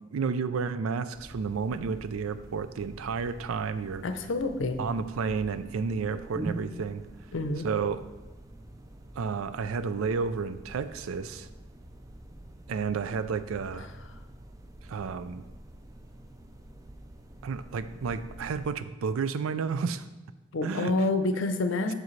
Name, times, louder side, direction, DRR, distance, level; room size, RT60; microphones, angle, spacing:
voice 1, 0.1-4.1 4.8-7.0 7.6-8.0 9.2-11.5 12.7-13.9 14.9-15.4 17.4-20.0 20.6-21.1, right 5 dB, 85° right, 12 dB, 0.4 m, -31 dB
sound 1, 1.1-18.7, right 1 dB, 15° right, 0.4 m, -46 dB
voice 2, 4.0-4.8 7.3-7.7 20.5-21.9, left 2 dB, 65° left, 9 dB, 0.6 m, -28 dB
7.4 x 6.3 x 3.2 m, 1.1 s
head